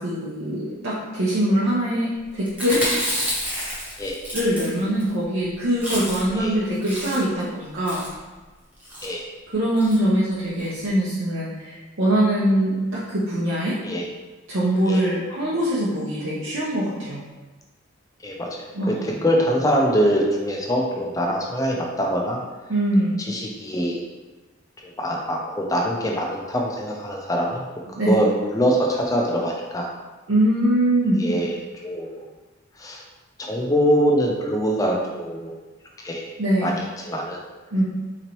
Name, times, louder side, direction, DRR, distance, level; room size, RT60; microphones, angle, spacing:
voice 1, 0.0-2.8 4.3-8.0 9.5-13.7 14.5-17.2 18.7-19.1 22.7-23.2 28.0-28.2 30.3-31.2 36.4-36.8 37.7-37.8, right 1 dB, 75° right, -9 dB, 0.7 m, -22 dB
Chewing mastication, 2.5-5.1 5.4-5.5 5.7-6.4 6.7-7.4 7.8-8.2 8.8-9.1 9.8-10.0 10.3-10.4 10.6-10.7, equal, 5° right, 0.8 m, -29 dB
voice 2, 18.2-18.9 19.2-22.4 23.3-24.0 24.8-27.7 28.1-29.9 31.2-31.5 31.8-32.2 32.8-33.0 33.4-35.6 36.0-36.3 36.6-37.4, equal, 15° left, 0 dB, 0.4 m, -23 dB
3.8 x 3.0 x 3.0 m, 1.2 s
head